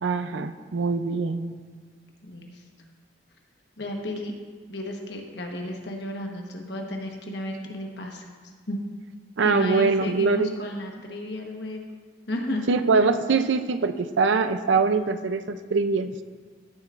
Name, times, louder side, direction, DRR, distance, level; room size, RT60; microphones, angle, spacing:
voice 1, 0.0-1.5 9.4-10.5 12.7-16.1, right 4 dB, 70° right, 10 dB, 0.5 m, -23 dB
voice 2, 2.2-2.6 3.8-4.3 4.7-8.3 8.7-8.8 9.4-11.8 12.3-12.6, left 1 dB, 60° left, 1 dB, 1.2 m, -33 dB
15.5 x 7.0 x 2.5 m, 1.5 s
head